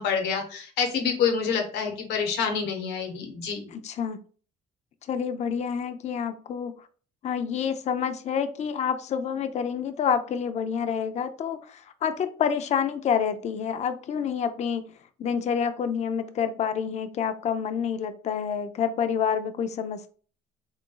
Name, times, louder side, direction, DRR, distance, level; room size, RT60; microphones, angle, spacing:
voice 1, 0.0-3.6, left 6 dB, 85° left, 4 dB, 1.0 m, -27 dB
voice 2, 3.7-4.2 5.1-6.9 7.2-14.9 15.2-20.1, left 7 dB, 40° left, 9 dB, 0.5 m, -28 dB
3.7 x 2.5 x 3.8 m, 0.41 s
cardioid pair, 110°, 17 cm